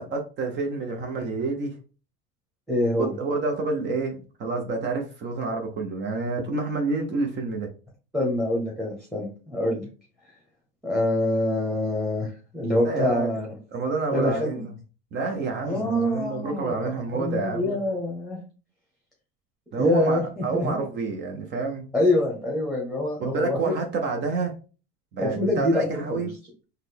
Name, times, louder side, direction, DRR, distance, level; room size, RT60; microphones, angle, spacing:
voice 1, 0.0-1.8 3.0-7.7 12.8-13.4 13.7-14.7 15.1-17.7 19.7-21.8 23.2-24.5 25.1-26.3, right 3 dB, 35° right, 0.6 m, -28 dB
voice 2, 2.7-3.1 8.1-9.9 10.8-13.5 14.1-14.7 15.6-16.9 17.2-18.4 19.8-20.8 21.9-23.7 25.2-26.3, left 1 dB, ahead, 1.0 m, -25 dB
3.9 x 2.2 x 3.3 m
supercardioid pair, 120°, 30 cm